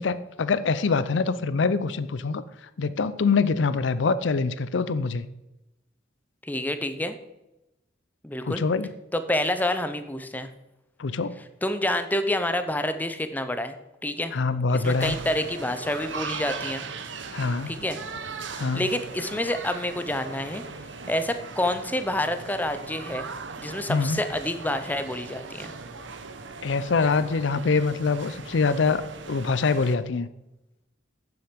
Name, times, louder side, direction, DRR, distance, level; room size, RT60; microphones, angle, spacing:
voice 1, 0.0-2.4 2.8-5.3 8.4-8.9 11.0-11.4 14.3-15.2 17.3-17.8 18.6-18.9 23.9-24.2 26.6-30.3, left 4 dB, 65° left, 15 dB, 0.5 m, -24 dB
voice 2, 6.4-7.2 8.2-8.6 9.1-10.5 11.6-13.7 14.0-14.3 14.7-16.8 17.7-18.0 18.7-20.6 21.1-23.3 23.6-25.7, left 1 dB, 10° left, 9 dB, 0.6 m, -28 dB
sound 1, 14.8-30.0, right 4 dB, 65° right, 0.9 m, -39 dB
9.4 x 7.2 x 5.1 m, 0.95 s
head